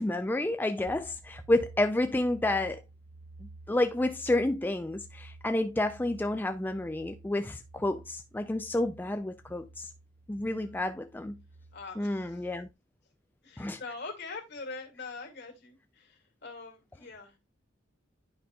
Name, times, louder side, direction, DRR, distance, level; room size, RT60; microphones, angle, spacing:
voice 1, 0.0-2.8 3.4-9.9 10.3-11.3 12.0-12.7 13.6-13.8, left 1 dB, 10° left, 0.3 m, -30 dB
sound 1, 0.8-12.7, right 2 dB, 60° right, 0.6 m, -52 dB
voice 2, 10.5-10.9 11.7-12.6 13.4-17.4, left 4 dB, 60° left, 2.2 m, -44 dB
10.0 x 5.2 x 2.3 m
head